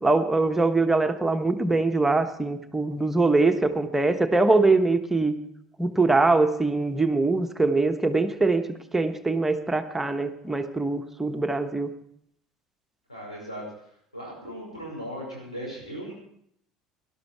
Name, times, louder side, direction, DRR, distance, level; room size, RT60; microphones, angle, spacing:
voice 1, 0.0-5.3 5.8-8.6 8.9-11.9, right 3 dB, 10° right, 7 dB, 1.2 m, -23 dB
voice 2, 13.1-13.6 14.1-16.1, equal, 90° left, -3 dB, 5.4 m, -37 dB
18.5 x 11.5 x 4.7 m, 0.70 s
figure-of-eight pair, 60°, 3 cm